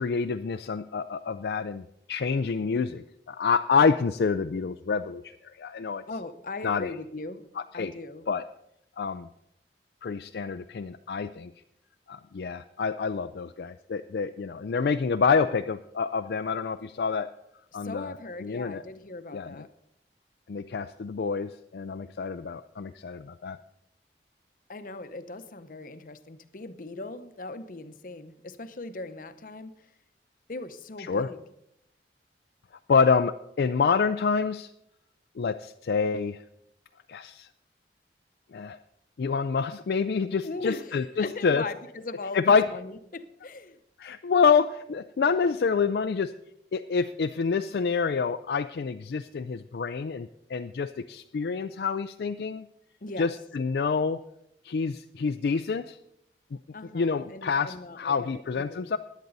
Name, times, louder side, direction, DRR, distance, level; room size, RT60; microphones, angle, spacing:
voice 1, 0.0-6.0 6.6-6.9 7.7-7.9 8.3-8.4 9.0-9.3 10.0-11.5 12.1-17.3 17.7-18.1 18.4-18.8 19.3-19.5 20.5-23.6 31.0-31.3 32.9-34.7 35.4-36.4 37.1-37.5 38.5-38.8 39.2-41.6 42.3-42.7 44.0-46.3 46.7-52.7 53.2-54.2 54.6-56.0 56.9-59.0, left 5 dB, 65° left, 0.4 m, -27 dB
voice 2, 6.1-7.5 7.7-8.3 17.7-19.7 24.7-29.8 30.5-31.4 40.4-43.8 53.0-53.3 56.7-58.9, left 2 dB, 50° left, 0.8 m, -39 dB
16.5 x 10.5 x 4.0 m
head